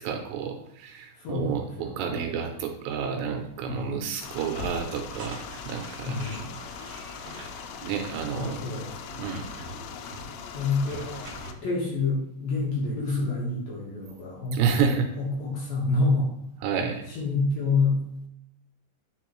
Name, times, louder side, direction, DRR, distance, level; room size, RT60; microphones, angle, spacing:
voice 1, 0.0-6.2 7.8-8.6 9.2-9.5 14.5-15.1 16.6-17.1, right 6 dB, 80° right, 4 dB, 2.7 m, -30 dB
voice 2, 1.2-2.1 3.7-4.1 6.0-6.5 8.3-9.0 10.5-11.1 11.6-16.3 17.1-18.0, left 3 dB, 65° left, -4 dB, 2.6 m, -28 dB
sound 1, 4.2-11.5, left 6 dB, 80° left, 2.7 m, -40 dB
sound 2, 5.1-11.5, right 2 dB, 55° right, 1.8 m, -46 dB
9.7 x 4.4 x 3.0 m, 0.75 s
omnidirectional pair, 5.4 m